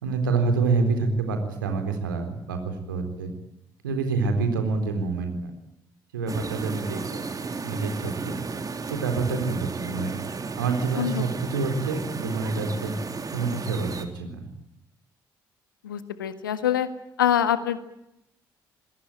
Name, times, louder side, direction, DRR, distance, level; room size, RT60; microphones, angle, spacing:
voice 1, 0.0-3.3 3.8-5.5 6.1-7.3 7.6-8.4 8.9-10.2 10.6-13.0 13.3-14.5, right 4 dB, 85° right, 6 dB, 4.1 m, -27 dB
sound 1, 6.3-14.1, right 4 dB, 35° right, 3.4 m, -34 dB
voice 2, 15.8-16.9 17.2-17.8, left 10 dB, 85° left, 12 dB, 1.7 m, -24 dB
25.5 x 22.0 x 9.1 m, 0.83 s
figure-of-eight pair, 45°, 11 cm